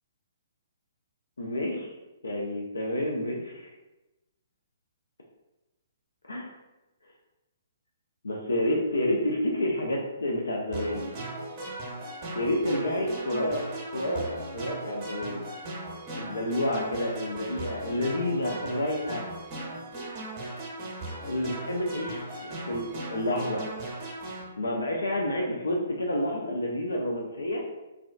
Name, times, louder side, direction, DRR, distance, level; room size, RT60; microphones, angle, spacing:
voice 1, 1.4-1.9 2.2-3.7 6.2-6.5 8.2-11.1 12.3-13.6 13.9-15.4 16.2-19.2 21.2-23.7 24.6-27.6, left 1 dB, 75° left, -1 dB, 0.4 m, -29 dB
sound 1, 10.7-24.4, right 2 dB, 30° right, 0.7 m, -38 dB
2.4 x 2.2 x 2.4 m, 1.0 s
figure-of-eight pair, 125°, 0 cm